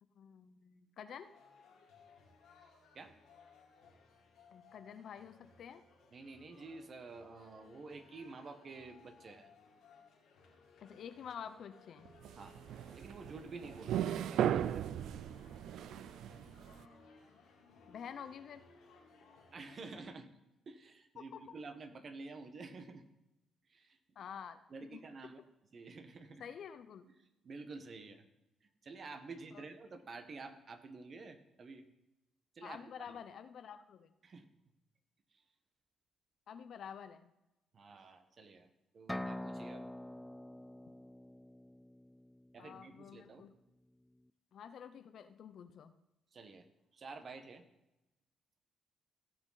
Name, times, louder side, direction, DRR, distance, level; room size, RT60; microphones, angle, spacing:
voice 1, 0.0-1.3 4.5-5.8 10.8-12.1 17.9-18.6 21.2-21.4 24.2-24.6 24.9-25.0 26.4-27.1 29.5-29.7 32.6-34.1 36.5-37.3 42.6-43.5 44.5-45.9, left 8 dB, 65° left, 11 dB, 0.7 m, -49 dB
sound 1, 1.2-20.1, left 4 dB, 85° left, 2.7 m, -62 dB
voice 2, 6.1-9.5 12.3-12.6 12.9-14.9 19.5-20.3 20.7-23.1 23.7-24.0 24.7-25.4 25.7-26.4 27.2-28.2 28.6-31.9 32.5-33.1 34.2-34.5 35.3-35.4 37.7-38.7 38.9-39.9 42.5-43.5 46.3-46.7 46.9-47.6, right 3 dB, 45° right, 8 dB, 1.2 m, -50 dB
sound 2, 12.1-16.8, right 10 dB, 80° right, 0.3 m, -36 dB
sound 3, 39.1-42.8, left 1 dB, 5° left, 0.4 m, -45 dB
16.5 x 6.1 x 4.1 m, 0.93 s
cardioid pair, 90°, 0 cm